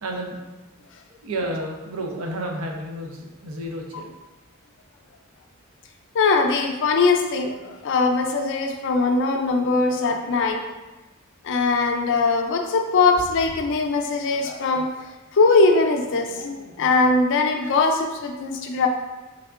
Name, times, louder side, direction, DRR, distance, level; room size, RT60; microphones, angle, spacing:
voice 1, 0.0-0.4 1.1-4.1, right 1 dB, 75° right, 1 dB, 0.6 m, -31 dB
voice 2, 6.1-10.6 11.4-14.9 15.3-18.9, left 3 dB, 60° left, 4 dB, 0.4 m, -21 dB
3.5 x 3.3 x 2.4 m, 1.1 s
head